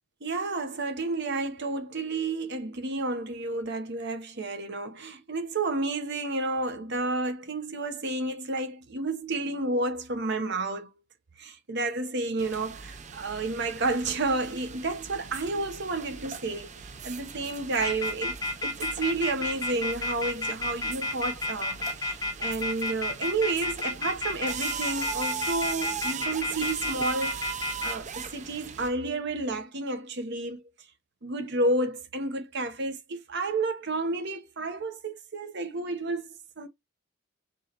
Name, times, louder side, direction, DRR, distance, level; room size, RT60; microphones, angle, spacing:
voice 1, 0.2-10.9 11.4-16.7 17.0-30.6 31.2-36.7, right 2 dB, 55° right, 0.9 m, -31 dB
sound 1, 12.4-28.9, right 6 dB, 35° right, 0.6 m, -40 dB
sound 2, 17.8-27.9, left 2 dB, 15° left, 0.7 m, -30 dB
4.6 x 3.1 x 2.9 m
head